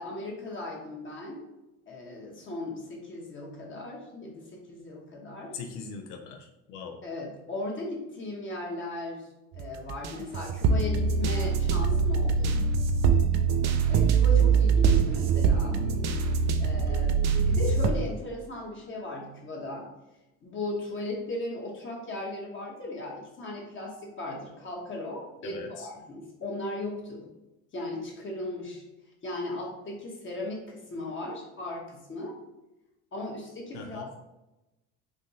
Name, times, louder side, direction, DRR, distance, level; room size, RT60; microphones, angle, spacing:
voice 1, 0.0-1.4 1.9-5.6 7.0-9.3 9.5-12.6 13.9-15.9 16.5-19.9 20.4-27.3 27.7-28.8 29.2-32.4 33.1-34.2, left 2 dB, 35° left, -2 dB, 1.0 m, -37 dB
voice 2, 5.5-7.0 25.4-25.9 33.7-34.1, left 5 dB, 90° left, 4 dB, 0.7 m, -40 dB
sound 1, 9.5-17.9, right 5 dB, 50° right, 0.4 m, -24 dB
3.5 x 2.5 x 2.7 m, 0.97 s
supercardioid pair, 90°, 35 cm